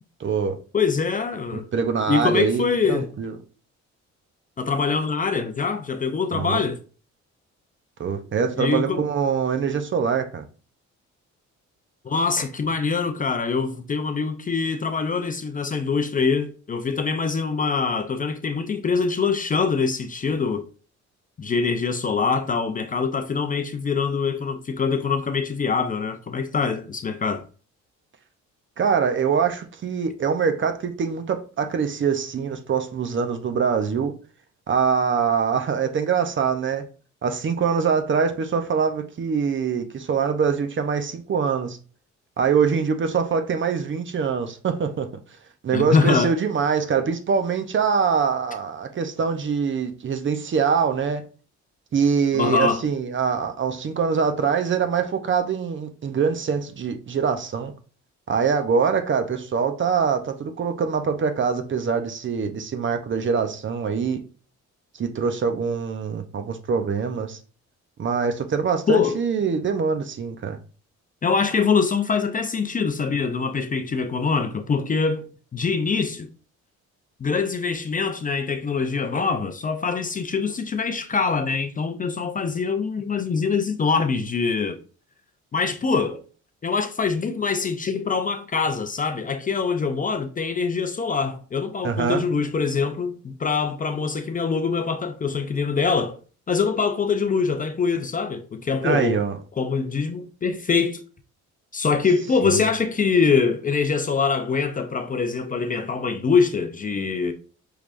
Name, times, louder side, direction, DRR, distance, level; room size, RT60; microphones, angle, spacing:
voice 1, 0.2-0.6 1.7-3.3 6.3-6.6 8.0-10.5 28.8-34.1 34.7-36.8 37.2-41.8 42.4-45.1 45.6-51.2 51.9-57.7 58.3-64.2 64.9-67.4 68.0-70.6 91.8-92.2 98.8-99.4 102.4-102.6, right 6 dB, 40° right, 0.6 m, -24 dB
voice 2, 0.7-1.7 2.1-3.1 4.6-6.8 8.6-9.0 12.0-20.6 21.4-27.4 45.7-46.3 52.3-52.8 68.9-69.2 71.2-76.3 77.2-84.8 85.5-86.2 86.6-96.2 96.5-99.2 99.6-101.0 101.7-107.3, left 5 dB, 30° left, 0.4 m, -24 dB
4.7 x 3.3 x 2.5 m
cardioid pair, 90°, 30 cm